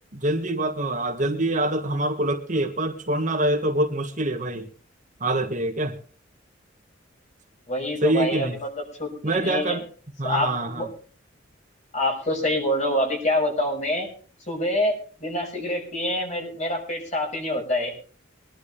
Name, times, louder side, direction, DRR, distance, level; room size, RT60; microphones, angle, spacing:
voice 1, 0.1-4.7 5.2-6.0 8.0-8.6 9.2-9.8 10.2-10.9, right 1 dB, 40° right, 1.6 m, -25 dB
voice 2, 7.7-9.8 10.2-10.9 11.9-14.1 14.5-14.9 15.2-17.9, left 1 dB, 35° left, 6.2 m, -26 dB
23.0 x 11.5 x 3.3 m
head